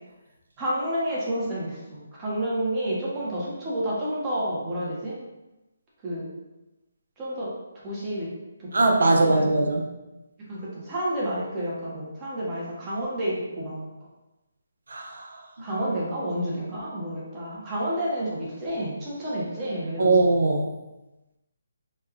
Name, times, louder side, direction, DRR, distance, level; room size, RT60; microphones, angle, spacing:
voice 1, 0.6-5.2 6.0-6.3 7.2-7.5 7.8-8.3 8.6-8.7 9.2-9.7 10.5-13.9 15.6-20.1, right 1 dB, 15° right, -7 dB, 0.7 m, -30 dB
voice 2, 8.7-9.8 14.9-15.3 20.0-20.7, right 2 dB, 75° right, 1 dB, 0.6 m, -20 dB
3.1 x 2.2 x 3.6 m, 1.0 s
hypercardioid pair, 170°, 0 cm